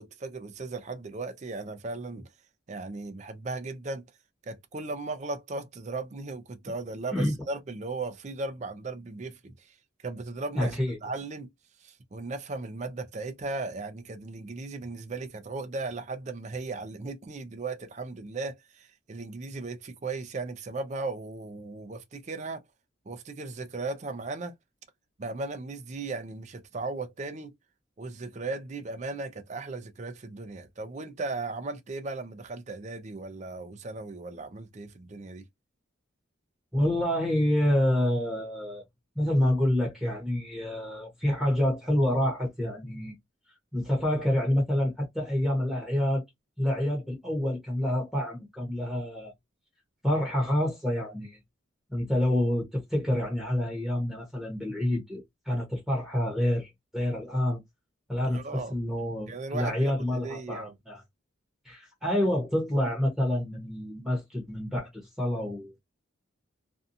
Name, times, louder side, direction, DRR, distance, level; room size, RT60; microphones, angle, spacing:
voice 1, 0.0-2.2 2.7-4.0 4.4-9.8 10.0-11.5 11.8-22.6 23.1-24.5 25.2-27.5 28.0-35.4 58.2-58.7 59.3-60.7, right 3 dB, 35° right, 0.4 m, -37 dB
voice 2, 10.6-11.0 36.7-38.8 39.2-43.1 43.7-46.2 46.6-49.3 50.0-51.4 51.9-57.6 58.1-61.0 61.6-65.8, left 1 dB, ahead, 0.9 m, -28 dB
2.6 x 2.2 x 2.6 m
head